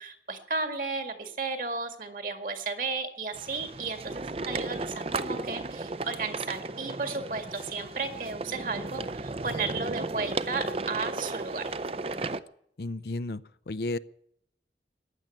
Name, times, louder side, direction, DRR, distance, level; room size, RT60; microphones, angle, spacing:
voice 1, 0.0-11.7, right 4 dB, 50° right, 7 dB, 2.0 m, -34 dB
sound 1, 3.3-12.4, right 3 dB, 35° right, 0.6 m, -35 dB
voice 2, 12.8-14.0, left 2 dB, 65° left, 15 dB, 0.6 m, -33 dB
15.0 x 10.5 x 8.5 m, 0.71 s
head